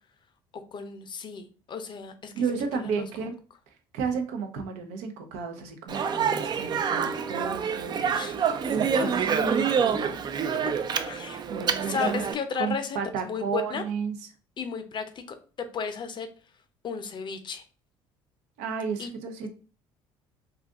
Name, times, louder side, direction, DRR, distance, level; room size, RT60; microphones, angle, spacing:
voice 1, 0.5-3.1 8.1-8.5 9.0-9.4 11.1-11.4 11.8-13.0 13.2-13.8 14.6-16.3 16.8-17.6 19.0-19.1, left 6 dB, 40° left, 8 dB, 0.6 m, -34 dB
voice 2, 2.3-3.4 3.9-8.0 8.7-10.3 11.5-12.1 12.6-14.1 18.6-19.5, right 6 dB, 75° right, 6 dB, 0.6 m, -32 dB
Speech, 5.9-12.3, right 7 dB, 40° right, 0.4 m, -27 dB
2.6 x 2.4 x 3.5 m, 0.36 s
supercardioid pair, 75°, 12 cm